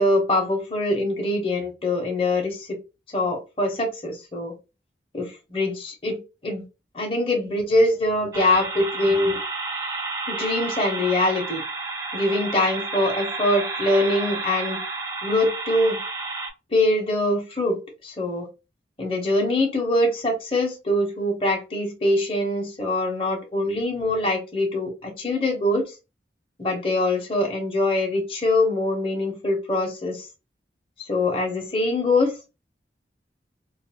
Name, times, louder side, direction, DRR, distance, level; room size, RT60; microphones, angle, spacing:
voice 1, 0.0-2.8 3.1-4.5 5.1-6.6 6.9-9.4 10.3-11.6 12.1-14.8 15.2-16.0 16.7-18.5 19.0-26.0 26.6-30.3 31.0-32.4, left 1 dB, 30° left, 1 dB, 0.7 m, -23 dB
sound 1, 8.3-16.5, right 3 dB, 20° right, 0.4 m, -31 dB
2.4 x 2.3 x 2.7 m, 0.28 s
head